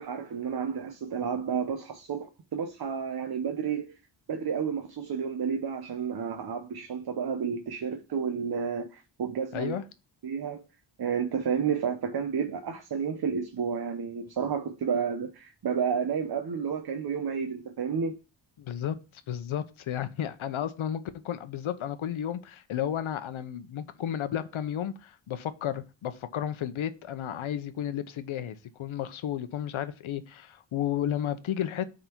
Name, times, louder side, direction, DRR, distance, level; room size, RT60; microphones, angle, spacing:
voice 1, 0.0-4.0 4.3-9.8 10.2-10.6 11.0-18.2, right 6 dB, 50° right, 0.9 m, -31 dB
voice 2, 9.5-9.8 18.6-19.0 19.3-31.8, left 10 dB, 80° left, 0.9 m, -33 dB
9.1 x 3.9 x 4.6 m
cardioid pair, 100°, 48 cm